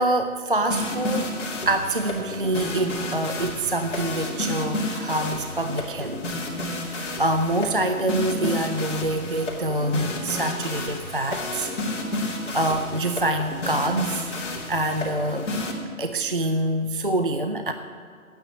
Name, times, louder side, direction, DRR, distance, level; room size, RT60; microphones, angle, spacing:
voice 1, 0.0-1.4 1.7-6.2 7.0-11.7 12.5-14.3 14.7-15.5 16.0-17.7, right 1 dB, 40° right, 7 dB, 0.4 m, -25 dB
sound 1, 0.6-15.7, left 2 dB, 55° left, 2.9 m, -31 dB
9.5 x 9.2 x 9.4 m, 2.1 s
hypercardioid pair, 170°, 42 cm